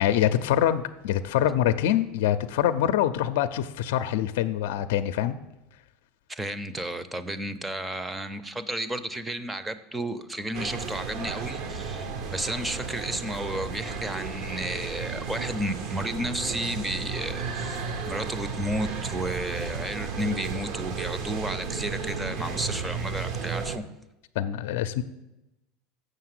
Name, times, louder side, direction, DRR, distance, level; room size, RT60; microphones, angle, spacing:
voice 1, 0.0-5.4 24.4-25.0, left 11 dB, 80° left, 11 dB, 0.5 m, -25 dB
voice 2, 6.3-23.9, right 1 dB, 10° right, 13 dB, 0.6 m, -32 dB
sound 1, 10.5-23.8, right 5 dB, 55° right, 0.9 m, -33 dB
7.3 x 6.6 x 7.7 m, 0.95 s
supercardioid pair, 130°, 0 cm